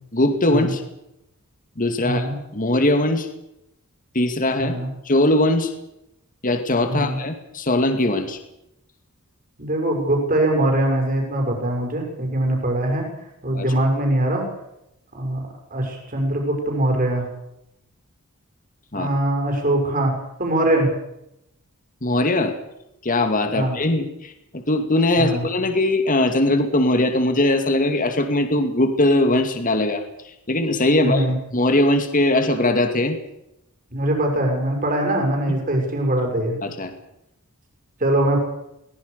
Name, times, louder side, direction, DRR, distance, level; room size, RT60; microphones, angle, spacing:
voice 1, 0.1-0.8 1.8-2.3 2.5-3.3 4.1-4.7 5.0-5.7 6.4-8.4 13.5-13.7 18.9-19.1 22.0-22.5 23.0-31.3 31.5-33.2 36.6-36.9, left 1 dB, 40° left, 7 dB, 2.3 m, -20 dB
voice 2, 2.0-2.3 4.6-4.9 6.9-7.2 9.6-13.1 13.4-14.5 15.1-17.3 18.9-20.1 20.4-20.9 23.5-23.7 25.2-25.4 31.0-31.4 33.9-36.6 38.0-38.4, right 1 dB, 40° right, 2 dB, 6.5 m, -22 dB
22.5 x 19.5 x 6.9 m, 0.84 s
head